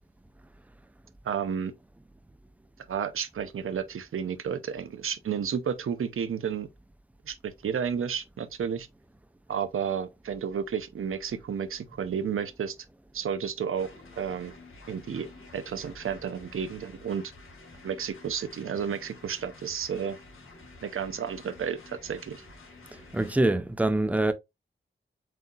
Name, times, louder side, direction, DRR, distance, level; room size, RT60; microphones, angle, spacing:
voice 1, 1.2-1.7 2.9-6.7 7.3-8.9 9.5-12.7 13.1-13.9 14.2-14.5 14.9-15.3 15.5-17.2 17.8-20.2 20.8-22.4, right 7 dB, 80° right, 0.7 m, -32 dB
sound 1, 13.7-23.3, left 3 dB, 75° left, 1.7 m, -51 dB
voice 2, 23.1-24.3, right 2 dB, 5° right, 0.5 m, -24 dB
7.6 x 2.8 x 2.3 m
wide cardioid pair, 160°, 21 cm